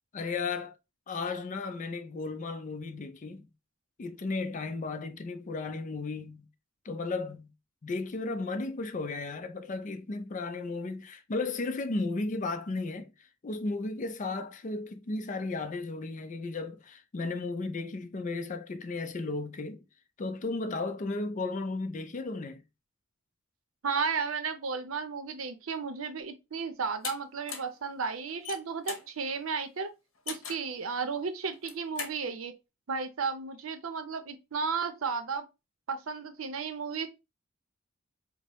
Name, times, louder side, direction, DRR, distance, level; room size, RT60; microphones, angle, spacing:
voice 1, 0.1-0.7 1.1-3.5 4.0-6.5 6.8-7.5 7.8-13.1 13.4-19.8 20.2-22.6, left 3 dB, 40° left, 0.4 m, -34 dB
voice 2, 23.8-29.9 30.3-32.5 32.9-35.5 35.9-37.1, right 5 dB, 80° right, 0.6 m, -33 dB
sound 1, 27.0-27.2 27.5-27.8 28.3-29.1 30.3-30.7 31.5-32.2, left 6 dB, 75° left, 0.8 m, -38 dB
4.7 x 2.0 x 2.9 m
head